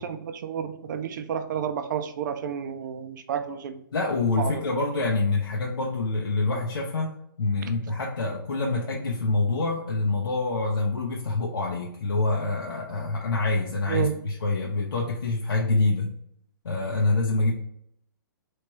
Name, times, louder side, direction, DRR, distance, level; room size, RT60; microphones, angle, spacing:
voice 1, 0.0-3.8 4.4-4.6 7.6-7.7 13.9-14.1, right 8 dB, 55° right, 9 dB, 0.5 m, -30 dB
voice 2, 3.9-16.1 16.6-17.5, left 3 dB, 85° left, -2 dB, 0.7 m, -26 dB
3.4 x 3.1 x 3.0 m, 0.71 s
hypercardioid pair, 140°, 12 cm